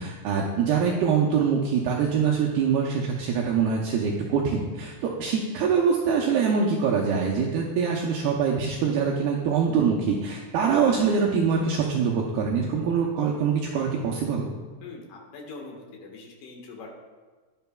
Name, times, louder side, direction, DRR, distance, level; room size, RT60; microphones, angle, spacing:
voice 1, 0.0-14.5, right 6 dB, 80° right, -2 dB, 2.3 m, -24 dB
voice 2, 14.8-16.9, left 3 dB, 60° left, 0 dB, 2.6 m, -42 dB
12.5 x 10.5 x 2.3 m, 1.4 s
omnidirectional pair, 5.2 m